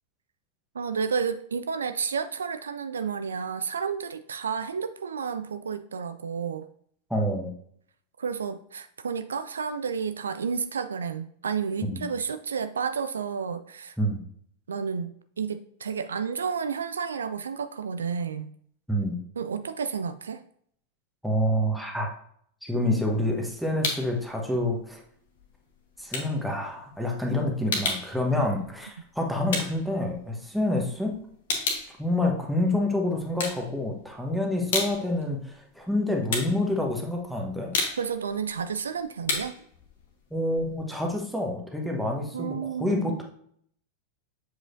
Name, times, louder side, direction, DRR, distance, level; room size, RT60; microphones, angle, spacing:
voice 1, 0.7-6.7 8.2-14.0 14.7-18.5 19.4-20.4 38.0-39.5 42.3-43.2, right 6 dB, 70° right, 10 dB, 0.3 m, -31 dB
voice 2, 7.1-7.5 11.9-12.1 14.0-14.2 18.9-19.1 21.2-22.1 22.6-25.0 26.0-31.2 32.0-37.7 40.3-42.5 42.8-43.2, left 1 dB, ahead, 0 dB, 1.1 m, -27 dB
sound 1, 23.0-24.2 24.5-30.8 31.1-32.9 33.2-34.1 34.5-41.2, left 3 dB, 60° left, 1.3 m, -33 dB
7.5 x 4.9 x 2.6 m, 0.65 s
figure-of-eight pair, 90°, 0 cm